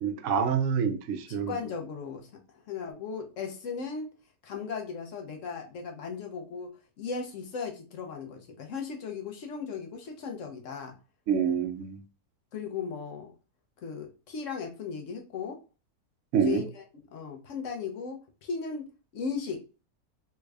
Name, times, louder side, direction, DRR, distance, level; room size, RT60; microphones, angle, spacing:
voice 1, 0.0-1.6 11.3-12.0 16.3-16.6, right 7 dB, 70° right, 0.7 m, -27 dB
voice 2, 1.3-4.1 4.4-11.0 12.5-13.3 13.8-15.6 16.4-16.8 17.1-18.9 19.1-19.6, left 5 dB, 60° left, 0.9 m, -37 dB
3.4 x 2.3 x 3.2 m
omnidirectional pair, 1.7 m